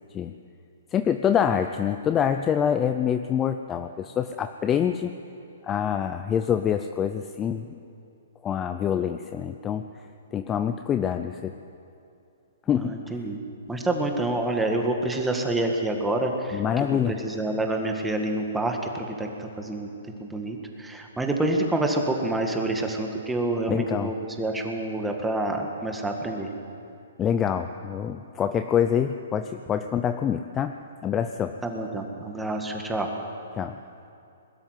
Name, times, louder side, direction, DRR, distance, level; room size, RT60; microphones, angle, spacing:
voice 1, 0.9-5.1 5.6-7.7 8.4-9.9 10.3-11.5 12.7-13.0 16.5-17.2 23.7-24.1 27.2-30.8 31.0-31.6 33.6-33.8, left 8 dB, 15° left, 8 dB, 0.5 m, -26 dB
voice 2, 12.8-13.4 13.7-19.9 20.2-26.5 31.6-33.1, right 2 dB, 5° right, 2 dB, 1.8 m, -27 dB
21.5 x 13.0 x 9.5 m, 2.6 s
hypercardioid pair, 150°, 0 cm